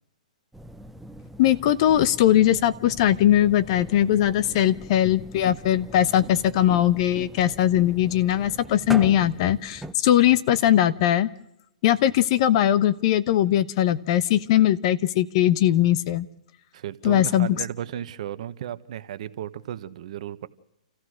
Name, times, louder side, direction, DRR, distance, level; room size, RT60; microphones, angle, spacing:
sound 1, 0.5-9.9, right 1 dB, 5° right, 0.7 m, -41 dB
voice 1, 1.4-11.3 11.8-16.3 17.0-17.6, left 12 dB, 45° left, 15 dB, 0.9 m, -20 dB
voice 2, 16.7-20.5, right 10 dB, 55° right, 12 dB, 1.1 m, -34 dB
28.5 x 15.0 x 6.4 m, 0.84 s
hypercardioid pair, 135°, 4 cm